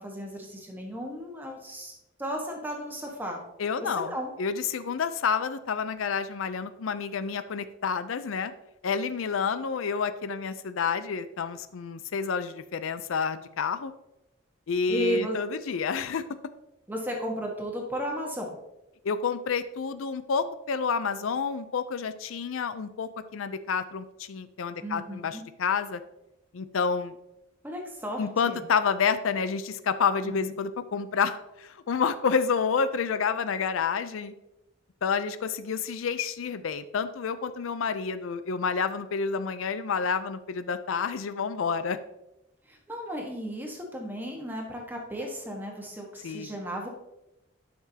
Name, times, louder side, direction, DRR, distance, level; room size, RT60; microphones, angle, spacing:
voice 1, 0.0-3.4 4.0-4.3 14.9-15.4 16.9-18.5 24.8-25.4 27.6-28.6 30.2-30.6 42.7-46.9, equal, 10° right, 0 dB, 1.3 m, -34 dB
voice 2, 3.6-8.5 8.8-13.9 14.7-16.2 19.0-26.0 26.5-27.2 28.2-34.3 35.0-42.0 46.2-46.5, left 5 dB, 85° left, 12 dB, 0.5 m, -29 dB
10.5 x 5.9 x 2.8 m, 0.90 s
head